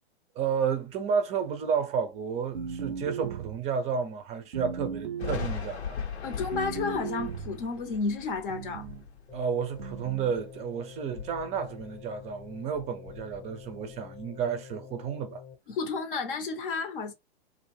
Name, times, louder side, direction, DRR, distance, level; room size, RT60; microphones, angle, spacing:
voice 1, 0.4-6.0 9.3-15.4, right 6 dB, 20° right, 0.5 m, -31 dB
sound 1, 2.5-3.7 4.5-5.6 6.5-7.6 8.5-9.1 9.8-10.4, right 6 dB, 85° right, 0.5 m, -37 dB
Thunder, 5.2-10.6 11.0-12.5 12.7-14.4, left 7 dB, 80° left, 0.8 m, -40 dB
voice 2, 6.2-8.9 15.7-17.1, left 4 dB, 55° left, 0.7 m, -32 dB
sound 2, 9.3-15.6, left 7 dB, 20° left, 0.7 m, -47 dB
2.6 x 2.1 x 3.0 m
hypercardioid pair, 115°, 32 cm